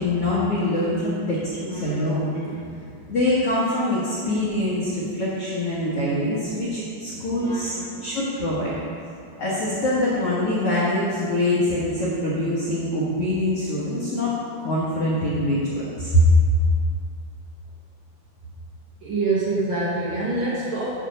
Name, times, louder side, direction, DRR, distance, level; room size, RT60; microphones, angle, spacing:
voice 1, 0.0-2.3 3.1-8.7 9.4-16.6, left 1 dB, 65° left, -7 dB, 1.5 m, -23 dB
voice 2, 1.7-2.1 2.3-2.7 4.3-4.4 7.1-7.9 19.0-20.9, right 3 dB, 60° right, -7 dB, 2.1 m, -27 dB
9.1 x 6.7 x 5.1 m, 2.4 s
omnidirectional pair, 4.7 m